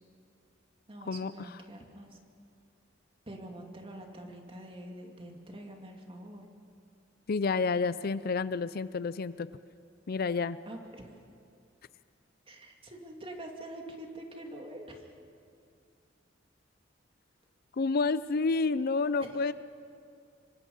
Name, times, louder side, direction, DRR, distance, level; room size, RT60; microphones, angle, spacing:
voice 1, 0.9-2.2 3.3-6.4 10.7-11.1 12.5-15.1 19.2-19.3, right 1 dB, 30° right, 2 dB, 2.6 m, -45 dB
voice 2, 7.3-9.5 10.1-10.6 17.7-19.5, left 4 dB, 50° left, 15 dB, 0.5 m, -29 dB
26.0 x 24.0 x 5.6 m, 2.4 s
head